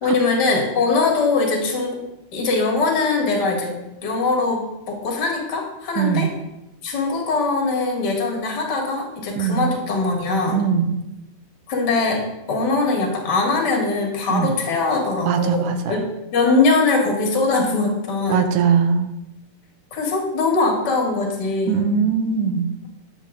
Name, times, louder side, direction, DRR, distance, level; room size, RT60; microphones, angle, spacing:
voice 1, 0.0-2.0 2.3-6.3 6.8-10.6 11.7-18.5 19.9-21.9, left 3 dB, 40° left, -1 dB, 2.1 m, -21 dB
voice 2, 6.0-6.3 9.4-9.7 10.5-11.0 14.3-14.5 15.3-16.0 18.3-19.1 21.7-22.7, right 7 dB, 90° right, 7 dB, 2.3 m, -20 dB
9.7 x 7.4 x 3.7 m, 0.92 s
omnidirectional pair, 3.5 m